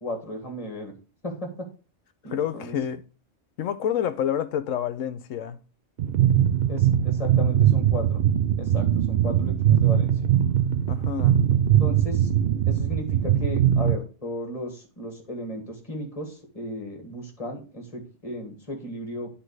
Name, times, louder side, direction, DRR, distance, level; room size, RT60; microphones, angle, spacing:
voice 1, 0.0-0.9 1.2-1.7 2.2-2.7 6.7-8.2 8.6-10.3 11.8-12.3 12.7-19.3, left 1 dB, 25° left, 1.9 m, -35 dB
voice 2, 2.3-3.0 3.6-5.6 10.9-11.4, left 9 dB, 70° left, 1.0 m, -28 dB
sound 1, 6.0-14.0, right 10 dB, 65° right, 0.6 m, -21 dB
9.8 x 3.3 x 4.7 m
omnidirectional pair, 1.4 m